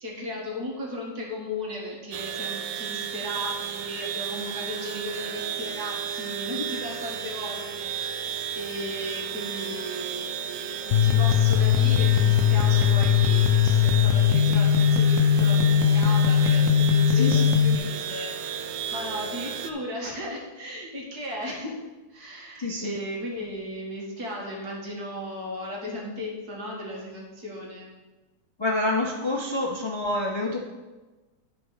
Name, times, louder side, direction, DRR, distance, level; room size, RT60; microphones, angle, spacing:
voice 1, 0.0-21.8 22.1-27.9, left 1 dB, 60° right, -2 dB, 2.4 m, -36 dB
sound 1, 2.1-19.7, right 8 dB, 85° right, 1.3 m, -33 dB
sound 2, 10.9-17.8, left 8 dB, 85° left, 0.6 m, -19 dB
voice 2, 22.6-23.0 28.6-30.6, left 2 dB, 35° left, -1 dB, 0.4 m, -27 dB
11.0 x 4.6 x 5.7 m, 1.2 s
omnidirectional pair, 1.9 m